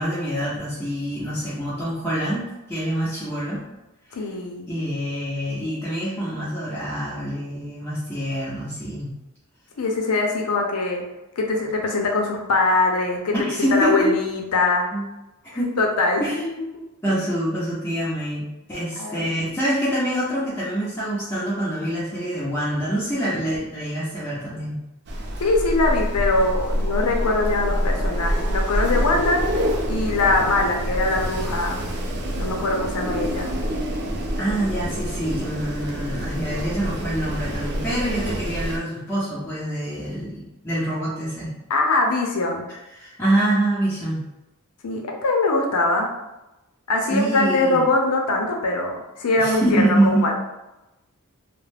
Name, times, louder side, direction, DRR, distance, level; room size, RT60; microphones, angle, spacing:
voice 1, 0.0-3.7 4.7-9.1 13.3-14.2 14.9-15.1 15.5-15.8 16.2-16.4 17.0-24.8 34.4-41.5 42.9-44.2 47.1-47.8 49.4-50.3, right 1 dB, 10° left, -10 dB, 0.5 m, -25 dB
voice 2, 4.1-4.7 9.8-11.0 11.4-14.9 15.8-16.8 19.0-19.3 25.4-29.4 29.9-31.9 32.4-33.5 41.7-42.7 44.8-46.1 46.9-50.4, left 2 dB, 85° left, 1 dB, 0.5 m, -22 dB
Wind, 25.1-38.8, equal, 50° right, 0.4 m, -26 dB
2.3 x 2.0 x 3.2 m, 0.97 s
head